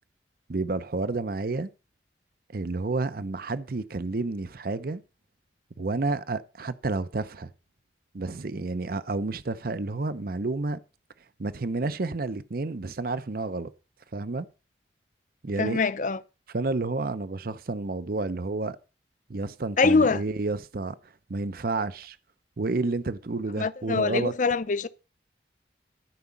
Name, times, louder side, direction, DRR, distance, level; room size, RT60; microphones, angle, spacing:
voice 1, 0.5-1.7 2.5-5.0 5.8-7.5 8.1-10.8 11.4-13.7 14.1-14.5 15.4-15.8 16.5-18.8 19.3-20.9 21.3-22.2 22.6-24.3, right 3 dB, 55° right, 0.6 m, -30 dB
voice 2, 15.6-16.2 19.8-20.2 23.6-24.9, left 4 dB, 45° left, 0.6 m, -23 dB
13.5 x 5.0 x 7.1 m
head